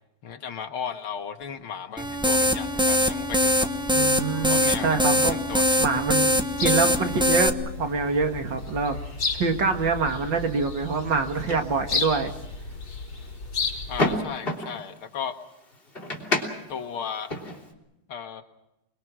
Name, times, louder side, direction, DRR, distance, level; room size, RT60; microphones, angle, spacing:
voice 1, 0.2-3.7 4.5-5.8 13.9-15.4 16.7-17.3 18.1-18.4, left 7 dB, 80° left, 7 dB, 2.4 m, -35 dB
sound 1, 2.0-7.5, left 1 dB, 5° right, 0.5 m, -22 dB
voice 2, 3.9-5.4 5.8-9.0 9.3-12.3, right 4 dB, 60° right, 5 dB, 2.5 m, -25 dB
sound 2, 6.6-14.2, left 4 dB, 55° left, 6.0 m, -33 dB
sound 3, 7.3-17.7, left 2 dB, 25° left, 3.5 m, -35 dB
28.5 x 22.0 x 6.2 m, 0.90 s
omnidirectional pair, 2.3 m